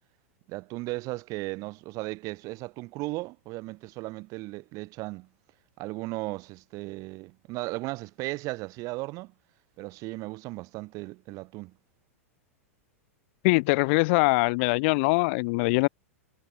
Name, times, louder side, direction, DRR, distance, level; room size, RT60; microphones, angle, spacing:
voice 1, 0.5-5.3 5.8-9.3 9.8-11.7, right 22 dB, 45° right, 1.8 m, -36 dB
voice 2, 13.4-15.9, left 28 dB, 55° left, 0.5 m, -22 dB
hypercardioid pair, 110°, 8 cm